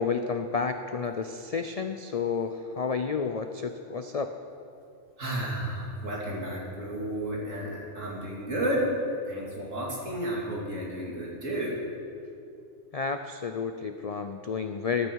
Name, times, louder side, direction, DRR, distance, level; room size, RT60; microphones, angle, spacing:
voice 1, 0.0-4.3 12.9-15.1, left 5 dB, 60° left, 7 dB, 0.4 m, -31 dB
voice 2, 5.2-8.9 9.2-11.8, right 1 dB, 75° right, -4 dB, 3.0 m, -32 dB
14.0 x 12.5 x 4.7 m, 2.5 s
omnidirectional pair, 1.3 m